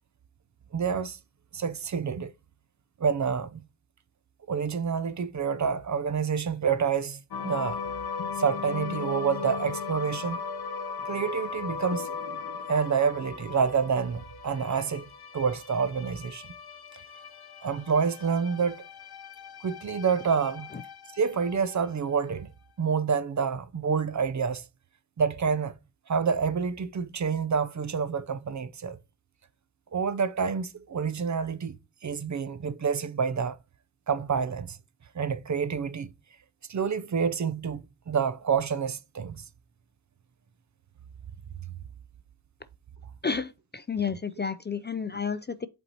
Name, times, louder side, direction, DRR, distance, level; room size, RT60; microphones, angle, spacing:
voice 1, 0.7-1.2 1.5-2.3 3.0-3.6 4.5-7.8 8.4-10.4 11.1-12.1 12.7-15.1 15.3-16.5 17.6-18.8 19.6-20.7 21.2-22.5 22.8-24.6 25.2-25.7 26.1-29.0 29.9-31.7 32.0-33.6 34.1-34.8 35.1-36.1 36.7-39.4, right 6 dB, 45° right, 0.5 m, -28 dB
sound 1, 7.3-21.8, left 5 dB, 65° left, 0.9 m, -38 dB
voice 2, 43.2-45.7, left 6 dB, 30° left, 0.3 m, -31 dB
8.0 x 4.4 x 2.9 m
wide cardioid pair, 130°, 40 cm